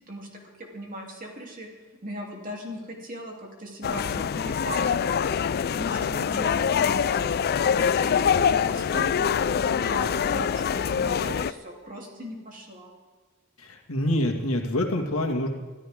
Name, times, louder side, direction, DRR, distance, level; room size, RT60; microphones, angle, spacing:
voice 1, 0.6-1.7 2.0-5.3 5.7-7.4 7.8-12.9, equal, 40° right, 0 dB, 3.2 m, -38 dB
sound 1, 3.8-11.5, left 7 dB, 45° left, 0.4 m, -24 dB
voice 2, 13.6-15.5, left 1 dB, 75° left, 2 dB, 2.2 m, -26 dB
24.5 x 13.5 x 3.7 m, 1.3 s
head